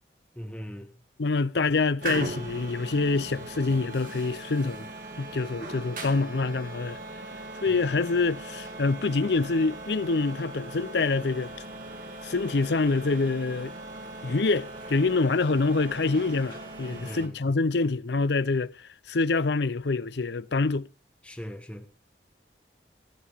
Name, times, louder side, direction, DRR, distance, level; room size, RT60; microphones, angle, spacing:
voice 1, 0.3-0.9 16.9-17.3 21.2-21.9, equal, 5° left, 1.4 m, -39 dB
voice 2, 1.2-4.9 5.2-7.0 7.6-11.5 12.2-13.7 14.2-20.9, left 3 dB, 70° left, 0.6 m, -26 dB
sound 1, 2.0-17.3, right 2 dB, 45° right, 2.7 m, -39 dB
15.5 x 13.0 x 3.6 m
head